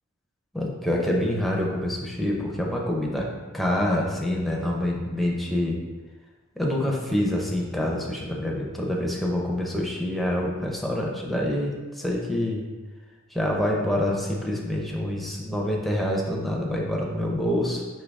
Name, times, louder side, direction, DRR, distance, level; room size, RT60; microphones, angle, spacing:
voice 1, 0.5-5.8 6.6-12.6 13.3-17.8, left 1 dB, ahead, -2 dB, 0.6 m, -26 dB
5.3 x 2.8 x 3.4 m, 1.3 s
head